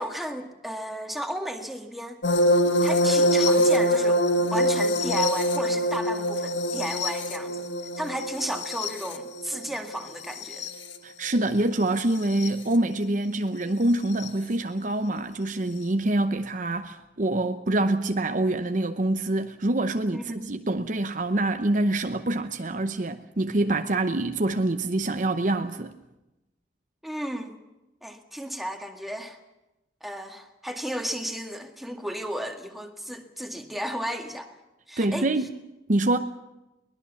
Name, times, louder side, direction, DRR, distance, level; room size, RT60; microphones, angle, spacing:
voice 1, 0.0-2.2 2.8-4.2 4.5-7.7 8.0-10.7 20.1-20.6 27.0-27.6 28.0-29.4 30.0-34.6 34.9-35.3, equal, ahead, 1.9 m, -34 dB
sound 1, 2.2-10.9 12.2-12.5 14.2-14.3, equal, 75° left, 1.7 m, -24 dB
voice 2, 11.0-25.9 35.0-35.5 35.9-36.2, right 2 dB, 40° right, 0.8 m, -25 dB
23.0 x 19.5 x 7.1 m
head